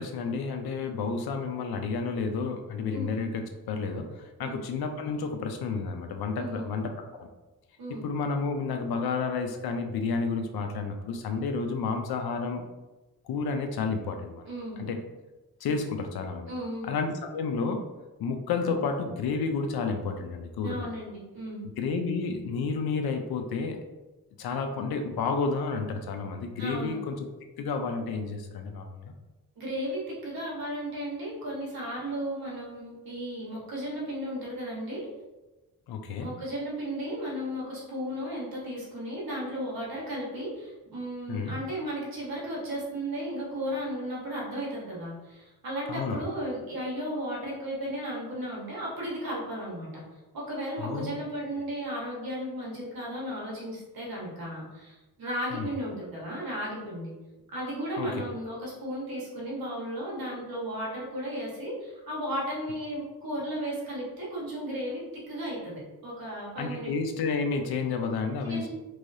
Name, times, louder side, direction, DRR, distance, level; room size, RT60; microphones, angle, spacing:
voice 1, 0.0-7.3 8.0-12.7 13.2-14.5 14.8-15.0 15.6-16.5 16.8-17.8 18.2-20.9 21.8-23.8 24.4-27.3 27.6-29.1 35.9-36.3 41.3-41.5 45.9-46.3 50.8-51.1 55.5-55.7 58.0-58.1 66.6-68.7, left 4 dB, 85° left, 5 dB, 0.5 m, -31 dB
voice 2, 6.4-6.7 7.8-8.0 14.4-14.8 16.5-16.9 20.6-21.6 26.6-27.0 29.6-35.1 36.2-50.0 50.3-57.1 57.5-66.9 68.4-68.7, equal, 70° right, -5 dB, 1.4 m, -35 dB
3.1 x 2.8 x 2.6 m, 1.1 s
cardioid pair, 75°, 36 cm